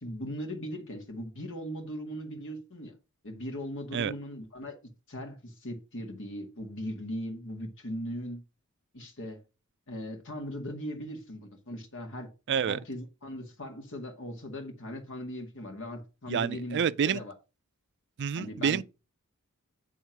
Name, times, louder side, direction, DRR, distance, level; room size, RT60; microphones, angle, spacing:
voice 1, 0.0-2.9 3.2-4.8 5.1-8.4 8.9-9.4 9.9-12.3 12.6-16.8 17.0-17.3 18.4-18.8, equal, 60° left, 2.0 m, -39 dB
voice 2, 12.5-12.8 16.3-17.2 18.2-18.8, right 7 dB, 55° right, 0.4 m, -28 dB
9.2 x 3.6 x 5.8 m
head